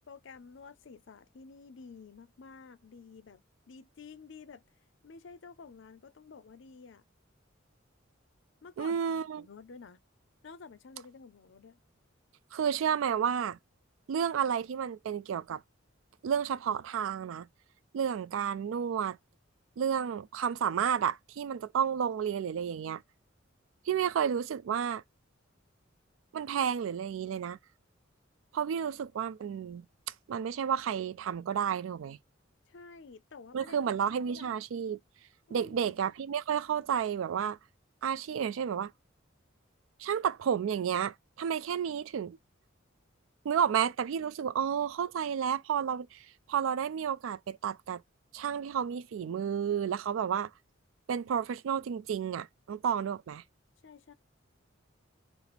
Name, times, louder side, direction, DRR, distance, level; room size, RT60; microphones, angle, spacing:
voice 1, 0.1-4.6 5.0-7.0 8.6-9.0 9.4-10.0 10.4-11.8 32.7-33.8 34.1-34.5 35.5-36.0 53.8-54.1, left 5 dB, 65° left, 0.5 m, -51 dB
voice 2, 8.8-9.5 12.5-13.6 14.1-15.6 16.2-17.5 17.9-19.2 19.8-23.0 23.9-25.0 26.3-27.6 28.5-29.8 30.3-32.2 33.5-35.0 35.5-37.6 38.0-38.9 40.0-42.4 43.4-48.0 48.3-50.5 51.1-53.4, right 8 dB, 80° right, 0.3 m, -31 dB
4.1 x 2.1 x 4.1 m
head